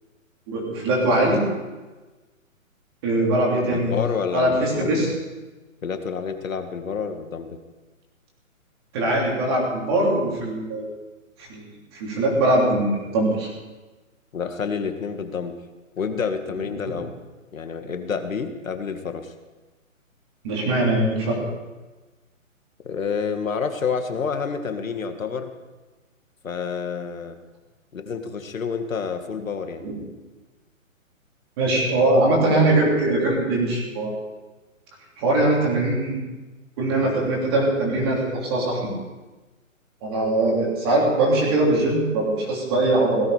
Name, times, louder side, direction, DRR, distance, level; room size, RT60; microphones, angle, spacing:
voice 1, 0.5-1.4 3.0-3.9 4.3-5.1 8.9-10.9 11.4-13.5 16.8-16.9 20.4-21.4 29.8-29.9 31.6-34.2 35.2-36.2 36.8-38.8 40.0-43.3, right 2 dB, 20° right, -2 dB, 3.3 m, -21 dB
voice 2, 3.7-5.1 5.8-7.6 14.3-15.6 16.0-17.1 17.5-19.3 22.8-25.5 26.4-27.4 27.9-29.9, left 5 dB, 70° left, 7 dB, 1.9 m, -28 dB
18.0 x 13.5 x 5.0 m, 1.2 s
hypercardioid pair, 175°, 41 cm